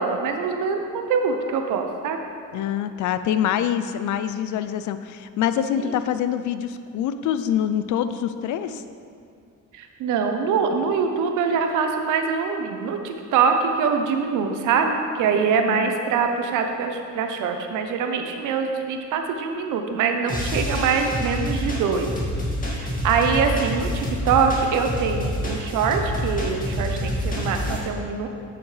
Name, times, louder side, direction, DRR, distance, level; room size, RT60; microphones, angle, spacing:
voice 1, 0.0-2.2 5.8-6.0 9.7-22.1 22.7-28.3, right 5 dB, 85° right, 5 dB, 0.8 m, -24 dB
voice 2, 2.5-8.8 15.6-16.0, left 9 dB, 75° left, 11 dB, 0.5 m, -25 dB
sound 1, 20.3-27.8, left 1 dB, 25° left, 2.1 m, -27 dB
8.8 x 7.0 x 3.3 m, 2.3 s
cardioid pair, 90°, 30 cm